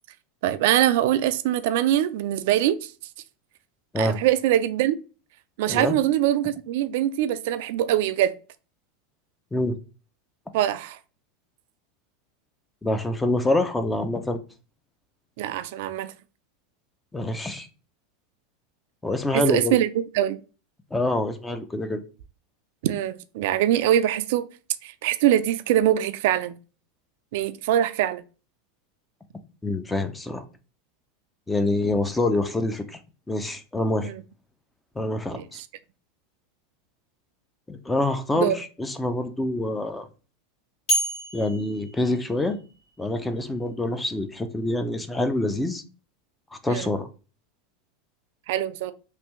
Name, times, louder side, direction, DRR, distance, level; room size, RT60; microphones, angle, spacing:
voice 1, 0.4-2.9 4.0-5.0 5.6-8.3 10.5-11.0 15.4-16.1 19.3-19.9 20.1-20.4 22.8-24.5 24.8-26.5 27.3-28.2 34.0-34.2 35.3-35.4 38.3-38.6 46.7-46.9 48.5-48.9, right 12 dB, 70° right, 0.3 m, -23 dB
voice 2, 12.8-14.4 17.1-17.7 19.0-19.8 20.9-22.0 29.6-30.4 31.5-33.0 33.3-34.1 35.0-35.6 37.7-40.1 41.3-42.6 43.0-45.8 46.6-47.1, left 2 dB, 10° left, 0.5 m, -26 dB
sound 1, 40.9-42.9, equal, 50° left, 1.8 m, -29 dB
3.3 x 2.6 x 3.0 m
hypercardioid pair, 110°, 0 cm